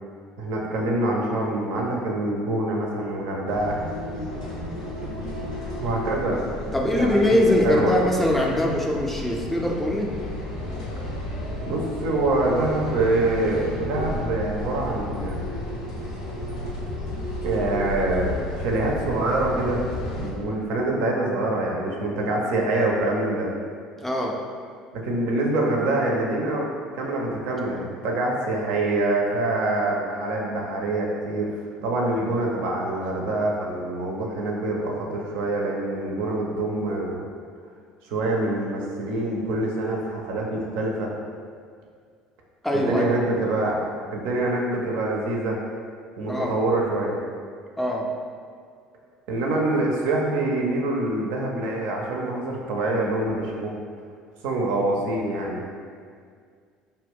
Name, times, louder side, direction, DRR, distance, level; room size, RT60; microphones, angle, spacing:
voice 1, 0.4-3.8 5.8-6.4 6.9-7.3 7.6-8.0 11.7-15.4 17.4-19.8 20.2-23.5 25.0-26.7 26.9-31.5 31.8-37.2 38.1-41.1 42.7-43.8 44.1-45.6 46.2-47.2 49.3-53.7 54.4-55.6, right 2 dB, 60° right, -1 dB, 0.4 m, -25 dB
sound 1, 3.5-20.3, left 1 dB, 80° left, 0.4 m, -32 dB
voice 2, 6.7-10.2 24.0-24.4 42.6-43.0 46.3-46.6 47.8-48.1, left 1 dB, 5° left, -1 dB, 0.3 m, -22 dB
2.1 x 2.1 x 3.4 m, 2.1 s
figure-of-eight pair, 60°, 3 cm